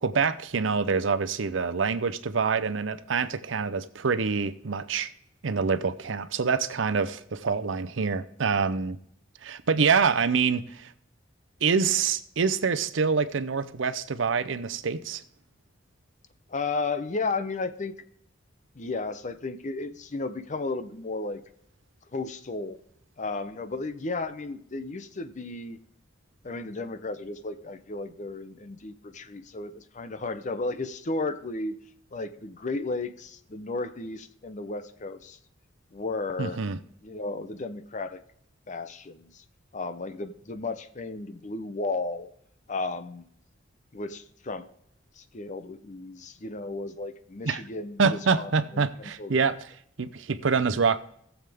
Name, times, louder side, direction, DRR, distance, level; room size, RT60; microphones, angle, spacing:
voice 1, 0.0-5.1 5.4-9.0 9.4-10.9 11.6-15.2 36.4-36.8 47.5-47.6 48.0-49.6 50.0-51.0, right 5 dB, 75° right, 0.6 m, -26 dB
voice 2, 16.5-17.9 18.7-21.4 22.1-22.8 23.2-25.8 26.4-31.8 32.1-35.4 35.9-36.6 37.0-38.2 38.7-39.4 39.7-42.3 42.7-43.3 43.9-44.7 45.2-49.4, left 3 dB, 40° left, 0.7 m, -34 dB
19.5 x 7.2 x 3.5 m
head